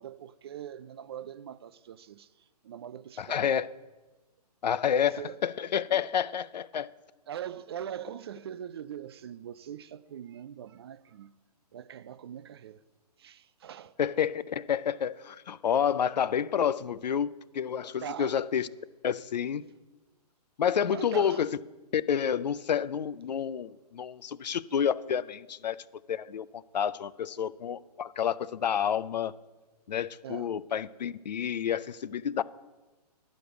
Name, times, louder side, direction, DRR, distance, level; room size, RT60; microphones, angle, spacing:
voice 1, 0.0-2.3 2.6-3.5 4.9-5.4 5.9-6.1 7.3-11.3 11.7-12.8 13.2-14.0 18.0-18.4 20.9-21.4 30.2-30.5, right 9 dB, 40° right, 0.4 m, -42 dB
voice 2, 3.2-3.7 4.6-6.9 14.0-18.7 19.0-19.6 20.6-21.6 21.9-25.8 26.1-29.3 29.9-32.4, left 8 dB, 85° left, 0.5 m, -29 dB
11.0 x 5.2 x 8.0 m
hypercardioid pair, 150°, 21 cm